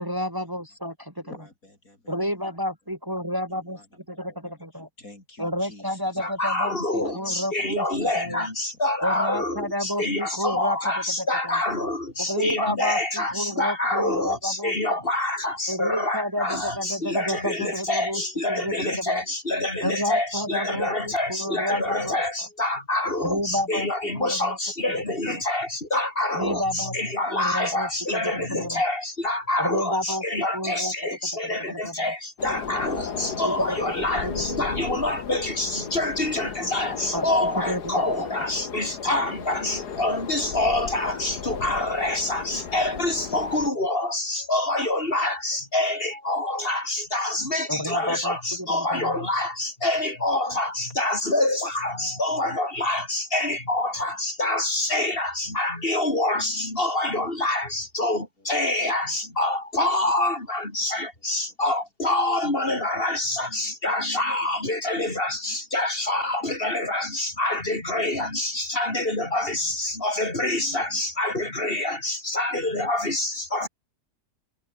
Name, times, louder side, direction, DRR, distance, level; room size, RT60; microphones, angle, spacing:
voice 1, 0.0-1.2 2.1-3.8 4.1-4.9 5.4-8.4 9.0-10.9 11.2-11.6 12.2-15.1 15.7-19.2 19.8-22.5 23.2-24.6 25.3-25.4 26.4-26.9 27.3-28.8 29.6-30.9 31.4-32.1 33.4-34.6 37.1-37.8 47.7-49.2, equal, 10° right, 3.8 m, -31 dB
voice 2, 1.2-2.1 3.5-3.8 4.4-4.5 5.0-6.3 6.7-7.4 7.9-8.1 8.6-8.7 39.1-39.2 43.0-43.4 62.6-62.7, left 2 dB, 55° left, 6.9 m, -47 dB
voice 3, 6.2-73.7, left 2 dB, 35° left, 5.2 m, -26 dB
sound 1, 32.4-43.7, left 7 dB, 75° left, 2.3 m, -35 dB
omnidirectional pair, 1.8 m